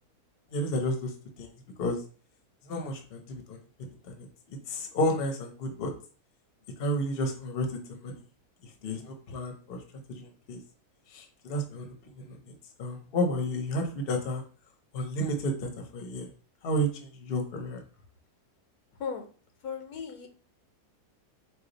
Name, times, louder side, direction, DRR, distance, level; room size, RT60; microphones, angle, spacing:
voice 1, 0.5-1.1 1.4-1.5 1.8-2.0 2.7-3.6 4.1-4.3 4.7-5.9 6.8-8.2 8.8-9.8 10.1-10.6 11.1-12.5 12.8-14.4 14.9-16.3 16.6-17.8, equal, 45° left, 3 dB, 0.9 m, -31 dB
voice 2, 19.6-20.3, left 6 dB, 80° left, 5 dB, 1.2 m, -36 dB
4.8 x 2.4 x 3.9 m, 0.40 s
omnidirectional pair, 1.7 m